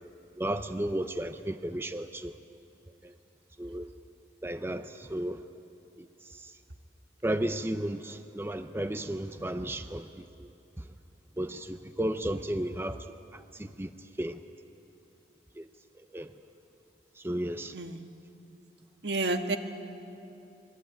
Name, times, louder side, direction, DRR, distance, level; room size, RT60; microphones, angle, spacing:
voice 1, 0.4-2.3 3.0-3.1 3.6-3.9 4.4-5.4 6.0-6.1 6.3-6.5 7.2-10.5 10.8-10.9 11.4-13.0 13.3-13.9 14.2-14.4 15.6-15.7 16.1-16.3 17.2-17.7, right 1 dB, 15° right, 9 dB, 0.6 m, -33 dB
voice 2, 19.0-19.6, right 2 dB, 70° right, 6 dB, 1.6 m, -29 dB
25.0 x 21.5 x 9.2 m, 2.7 s
head